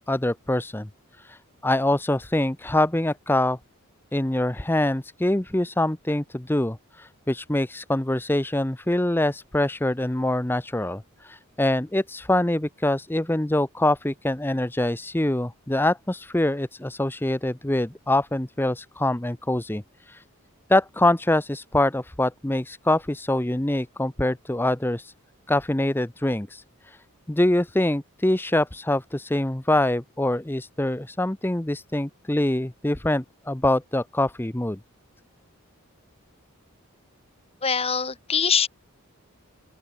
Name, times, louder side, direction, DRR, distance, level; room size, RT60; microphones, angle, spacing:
voice 1, 0.1-0.9 1.2-3.6 4.1-20.2 20.7-25.1 25.5-27.0 27.3-34.8, left 1 dB, 10° left, 0.6 m, -24 dB
voice 2, 37.6-38.7, left 6 dB, 25° left, 1.9 m, -23 dB
open air
head